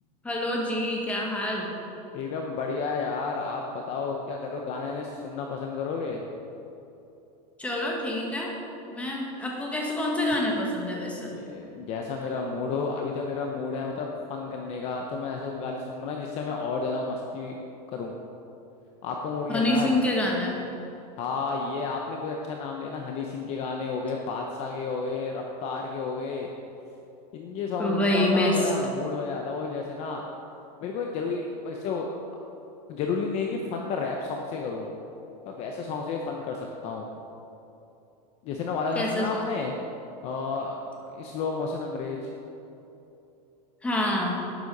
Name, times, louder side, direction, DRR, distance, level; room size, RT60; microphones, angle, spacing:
voice 1, 0.2-1.7 7.6-8.5 8.9-11.3 19.5-20.6 27.8-28.7 38.9-39.4 43.8-44.4, left 1 dB, 5° left, -2 dB, 1.5 m, -26 dB
voice 2, 2.1-6.3 11.3-17.6 17.9-18.1 19.0-19.9 21.2-26.5 27.3-30.2 30.8-32.1 32.9-34.9 35.4-37.1 38.4-39.7 40.2-42.2, left 4 dB, 30° left, 1 dB, 0.8 m, -31 dB
11.5 x 9.3 x 5.3 m, 2.9 s
supercardioid pair, 170°, 21 cm